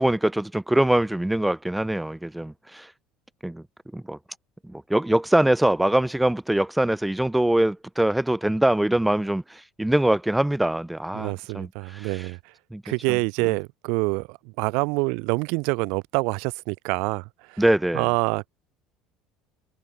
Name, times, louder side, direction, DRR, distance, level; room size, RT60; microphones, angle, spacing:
voice 1, 0.0-2.9 3.4-3.6 3.9-4.2 4.6-12.2 12.7-12.8 13.1-13.2 17.6-18.1, right 1 dB, 5° right, 4.1 m, -23 dB
voice 2, 11.1-12.4 12.8-17.6 17.9-18.5, right 30 dB, 70° right, 4.3 m, -26 dB
hypercardioid pair, 75°, 0 cm